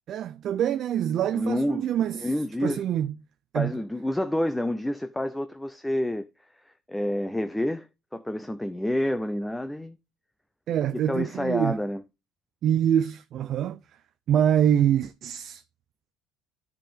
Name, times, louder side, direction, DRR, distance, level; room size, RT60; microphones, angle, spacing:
voice 1, 0.1-2.3 2.6-3.1 3.5-3.7 10.7-11.8 12.6-13.8 14.3-15.6, right 10 dB, 45° right, 0.4 m, -25 dB
voice 2, 1.3-1.9 2.2-2.8 3.5-6.3 6.7-7.9 8.1-10.0 11.1-12.0, left 1 dB, 5° left, 0.5 m, -28 dB
10.5 x 5.2 x 3.5 m
cardioid pair, 130°, 0 cm